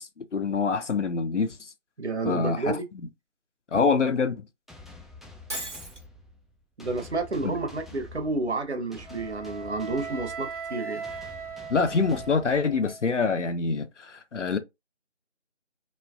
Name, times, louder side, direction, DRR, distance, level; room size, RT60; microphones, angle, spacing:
voice 1, 0.0-1.7 2.2-2.7 3.7-4.5 7.4-7.5 11.7-14.6, left 4 dB, 80° left, 0.6 m, -25 dB
voice 2, 2.0-2.9 6.8-11.0, right 3 dB, 65° right, 0.8 m, -30 dB
sound 1, 4.7-13.1, left 2 dB, ahead, 0.3 m, -48 dB
Shatter, 5.5-6.0, right 1 dB, 85° right, 1.4 m, -35 dB
Wind instrument woodwind instrument, 9.0-13.1, right 5 dB, 30° right, 1.1 m, -39 dB
3.0 x 2.3 x 2.3 m
figure-of-eight pair, 170°, 35 cm